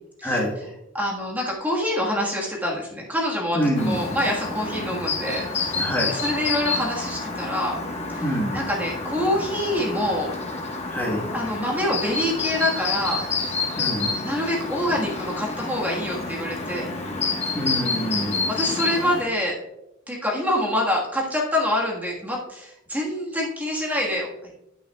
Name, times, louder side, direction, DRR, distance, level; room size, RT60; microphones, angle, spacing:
voice 1, 0.2-0.5 3.5-4.0 5.7-6.2 8.2-8.6 10.9-11.2 13.8-14.1 17.5-18.5, equal, 10° left, -3 dB, 1.3 m, -25 dB
voice 2, 0.9-5.8 6.1-7.8 8.1-8.2 8.5-10.3 11.3-13.7 14.2-16.9 18.5-19.6 20.1-24.3, left 1 dB, 10° right, -2 dB, 1.4 m, -26 dB
Chirp tweet, 3.7-19.2, left 3 dB, 30° left, 1.2 m, -29 dB
9.1 x 9.0 x 2.3 m, 0.87 s
head